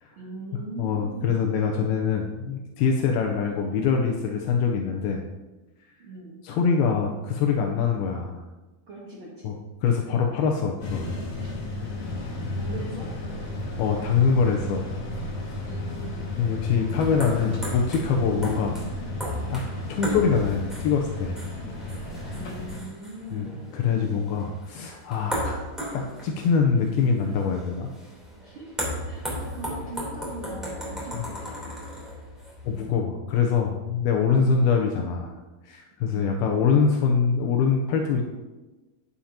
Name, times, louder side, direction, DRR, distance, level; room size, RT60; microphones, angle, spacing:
voice 1, 0.2-1.6 6.0-6.4 8.9-9.6 11.4-11.5 12.6-13.1 15.6-16.4 22.3-23.8 28.4-28.7 29.0-31.7 36.1-36.4, right 1 dB, 70° right, -4 dB, 1.2 m, -41 dB
voice 2, 0.8-5.2 6.4-8.4 9.4-9.5 9.8-11.1 13.8-14.9 16.4-18.8 19.5-21.4 23.3-23.5 23.7-25.7 25.9-27.9 29.2-29.4 32.6-35.4 35.6-38.2, left 6 dB, 80° left, 1 dB, 2.6 m, -24 dB
sound 1, 10.8-22.8, left 2 dB, 55° left, 2.8 m, -33 dB
sound 2, 15.1-32.9, equal, ahead, 2.6 m, -36 dB
11.0 x 10.0 x 2.9 m, 1.2 s
omnidirectional pair, 4.5 m